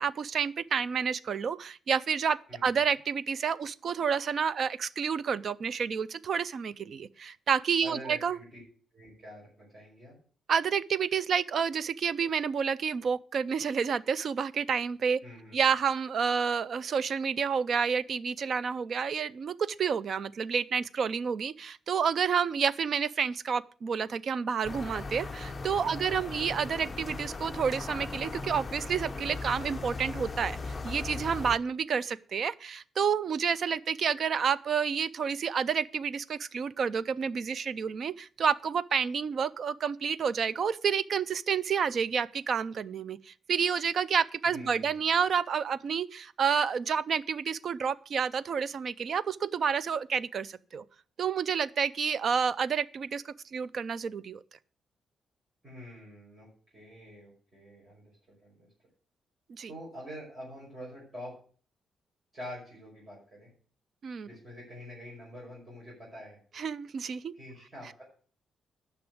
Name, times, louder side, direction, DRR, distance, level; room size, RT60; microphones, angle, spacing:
voice 1, 0.0-8.4 10.5-15.2 15.5-50.8 51.2-53.2 53.5-54.4 59.5-59.7 64.0-64.3 66.6-67.3, right 6 dB, 45° right, 0.5 m, -29 dB
voice 2, 2.5-2.8 7.8-8.6 8.9-10.2 15.2-15.6 25.8-26.5 44.4-45.2 55.6-58.7 59.7-61.3 62.3-63.5 64.2-66.4 67.3-68.0, equal, 20° right, 5.6 m, -46 dB
sound 1, 24.6-31.6, left 3 dB, 20° left, 0.7 m, -38 dB
10.5 x 6.0 x 7.8 m
wide cardioid pair, 160°, 0 cm